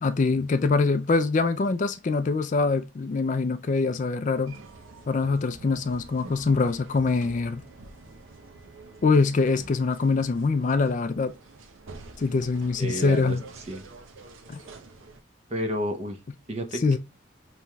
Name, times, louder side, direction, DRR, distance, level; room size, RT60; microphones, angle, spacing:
voice 1, 0.0-4.6 5.1-7.6 9.0-11.3 12.2-13.4 16.8-17.0, left 4 dB, 40° left, 0.3 m, -24 dB
sound 1, 4.5-15.2, right 3 dB, 75° right, 0.7 m, -47 dB
voice 2, 12.8-13.8 15.5-16.2 16.5-17.0, equal, 30° right, 0.7 m, -31 dB
5.4 x 3.1 x 2.2 m
head